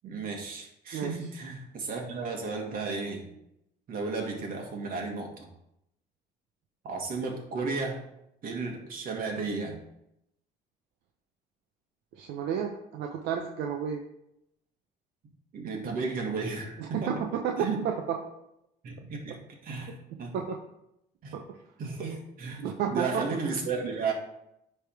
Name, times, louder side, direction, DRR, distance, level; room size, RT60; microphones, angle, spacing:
voice 1, 0.0-3.3 3.9-5.5 6.8-8.0 8.4-9.8 15.5-17.1 17.6-17.8 18.8-20.3 21.2-21.3 21.8-24.1, right 4 dB, 60° right, 1 dB, 1.9 m, -34 dB
voice 2, 12.2-14.0 16.8-18.2 20.3-20.6 21.3-21.4 22.6-23.2, right 7 dB, 80° right, 3 dB, 0.7 m, -31 dB
9.7 x 3.5 x 4.7 m, 0.81 s
cardioid pair, 110°, 17 cm